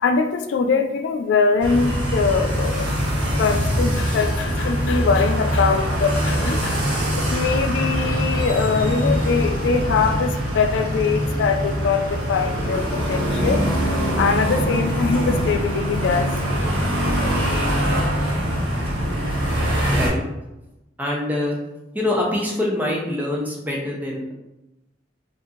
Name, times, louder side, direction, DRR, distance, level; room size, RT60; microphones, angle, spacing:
voice 1, 0.0-2.9 3.4-6.8 7.2-16.5, left 5 dB, 70° left, 7 dB, 0.3 m, -22 dB
sound 1, 1.6-20.1, equal, 80° right, 1.3 m, -23 dB
voice 2, 21.0-21.6 21.9-24.3, left 1 dB, 10° right, -2 dB, 0.6 m, -24 dB
2.8 x 2.5 x 3.6 m, 0.96 s
head